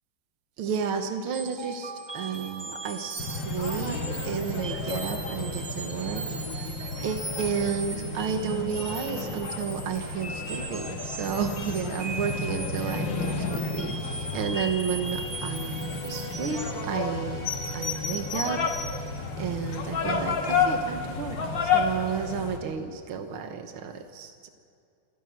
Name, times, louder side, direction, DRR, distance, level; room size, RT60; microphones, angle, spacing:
voice 1, 0.6-6.2 6.6-6.7 7.0-18.6 19.4-24.5, right 6 dB, 75° right, 6 dB, 2.0 m, -32 dB
sound 1, 1.3-16.8, right 2 dB, 15° right, 1.2 m, -39 dB
sound 2, 3.2-22.6, left 4 dB, 60° left, 2.3 m, -31 dB
sound 3, 15.1-20.3, right 3 dB, 60° right, 5.7 m, -44 dB
27.5 x 11.0 x 9.4 m, 2.5 s
omnidirectional pair, 2.3 m